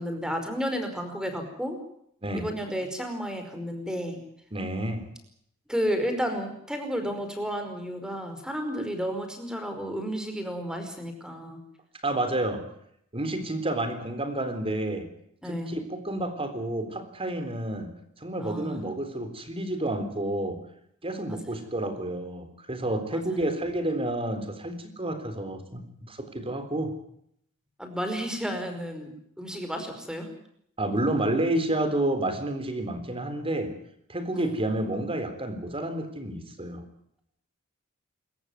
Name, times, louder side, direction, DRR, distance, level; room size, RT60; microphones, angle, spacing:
voice 1, 0.0-1.8 2.3-4.2 5.7-11.6 15.4-15.7 18.4-18.8 21.3-21.4 23.1-23.5 27.8-30.3 34.3-34.6, equal, 5° right, 6 dB, 5.1 m, -32 dB
voice 2, 4.5-5.0 12.0-12.7 13.1-15.1 15.5-20.6 21.0-25.8 26.1-27.0 30.8-33.7 34.1-36.8, right 1 dB, 25° right, 9 dB, 3.7 m, -30 dB
27.0 x 14.5 x 9.5 m, 0.70 s
head